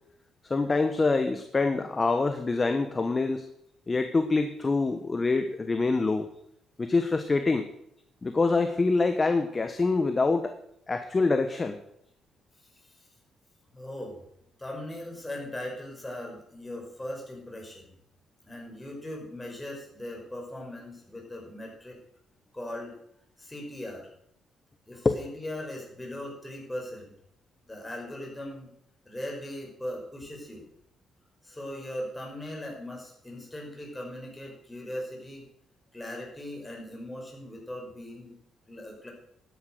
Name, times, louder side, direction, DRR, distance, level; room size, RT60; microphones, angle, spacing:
voice 1, 0.5-3.4 3.9-6.3 6.8-7.7 8.2-10.5 10.9-11.8 25.0-25.2, left 3 dB, 25° left, 8 dB, 1.2 m, -25 dB
voice 2, 13.7-14.2 14.6-17.9 18.4-22.0 22.5-22.9 23.4-24.1 24.9-27.1 27.6-28.7 29.1-30.7 31.4-35.5 35.9-38.3 38.7-39.1, left 1 dB, 10° left, -1 dB, 5.8 m, -39 dB
12.5 x 10.0 x 6.6 m, 0.74 s
cardioid pair, 90°, 0 cm